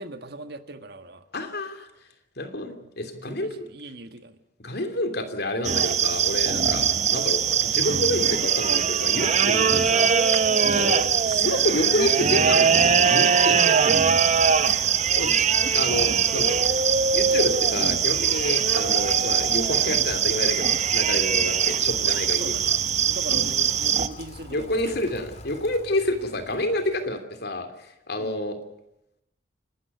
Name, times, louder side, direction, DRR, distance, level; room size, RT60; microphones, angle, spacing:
voice 1, 0.0-1.2 2.8-2.9 3.3-4.4 10.8-11.0 15.2-15.5 21.3-21.5 22.3-22.7 23.0-24.9 28.2-28.4, right 2 dB, 55° right, 8 dB, 1.7 m, -39 dB
voice 2, 1.3-1.9 2.4-3.7 4.6-6.9 7.1-10.1 10.7-13.8 15.1-15.4 15.7-16.6 17.1-22.5 24.5-28.6, left 1 dB, 55° left, 7 dB, 3.0 m, -29 dB
sound 1, 5.6-24.1, right 7 dB, 40° right, 0.9 m, -21 dB
Rain, 13.4-27.2, left 1 dB, 35° left, 2.1 m, -44 dB
29.5 x 13.0 x 9.7 m, 0.83 s
head